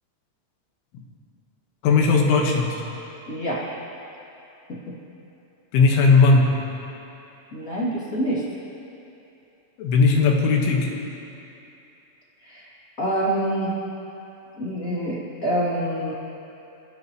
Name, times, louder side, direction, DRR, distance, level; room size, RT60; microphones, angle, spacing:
voice 1, 1.8-2.8 5.7-6.5 9.8-10.9, left 4 dB, 75° left, 1 dB, 3.8 m, -17 dB
voice 2, 3.3-3.6 7.5-8.4 12.5-12.7 13.0-13.7 14.6-16.1, right 1 dB, 30° left, -7 dB, 1.7 m, -26 dB
25.5 x 16.5 x 3.1 m, 2.9 s
omnidirectional pair, 5.7 m